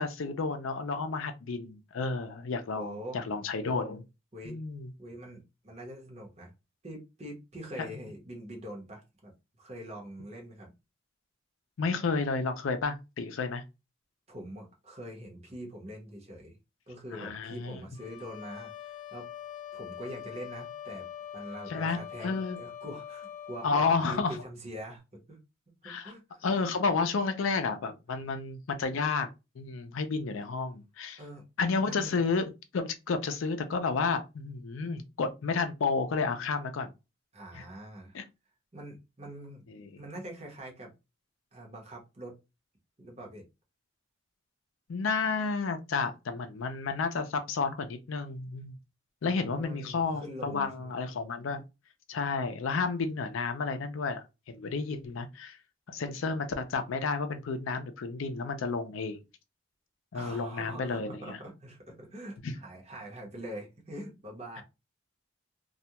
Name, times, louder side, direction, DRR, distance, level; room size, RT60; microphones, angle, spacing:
voice 1, 0.0-4.0 4.5-4.9 11.8-13.6 17.1-17.8 21.7-22.6 23.6-24.4 25.8-26.1 26.4-29.3 29.6-31.2 31.6-32.5 32.7-36.9 37.5-37.6 38.1-38.2 39.7-39.9 44.9-48.8 49.2-51.6 52.1-55.6 55.9-59.2 60.1-61.4 62.4-62.5, left 4 dB, 80° left, 0.4 m, -31 dB
voice 2, 2.7-3.2 4.3-4.6 5.0-6.5 6.8-9.3 9.6-10.7 14.3-16.6 16.9-19.3 19.7-21.1 21.3-25.4 25.8-26.5 31.2-31.4 31.9-32.3 37.3-38.2 38.7-39.6 40.0-40.9 41.5-42.3 43.0-43.4 49.2-50.9 60.1-64.6, right 1 dB, 30° right, 0.8 m, -44 dB
sound 1, 18.0-24.0, left 10 dB, 40° left, 0.7 m, -43 dB
2.3 x 2.2 x 2.8 m
head